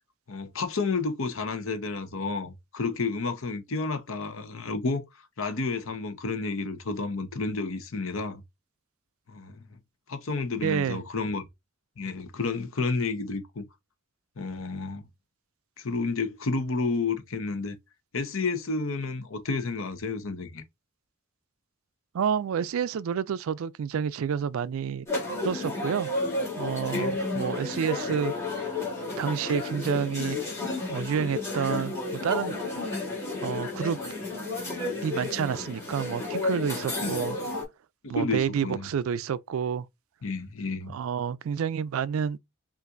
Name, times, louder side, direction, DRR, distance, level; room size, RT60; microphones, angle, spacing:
voice 1, 0.3-5.0 5.4-8.4 9.3-9.7 10.1-11.5 12.0-13.7 14.4-15.0 15.8-17.7 18.1-20.6 26.9-27.2 37.0-37.2 38.0-38.9 40.2-41.0, left 3 dB, 70° left, 0.8 m, -31 dB
voice 2, 10.6-11.0 22.1-25.1 25.4-26.1 26.6-28.3 29.2-30.4 30.9-32.6 33.4-34.0 35.0-37.4 38.1-39.9 40.9-42.4, right 7 dB, 75° right, 0.3 m, -29 dB
sound 1, 25.1-37.6, left 2 dB, 15° left, 1.8 m, -32 dB
5.4 x 2.5 x 2.5 m
head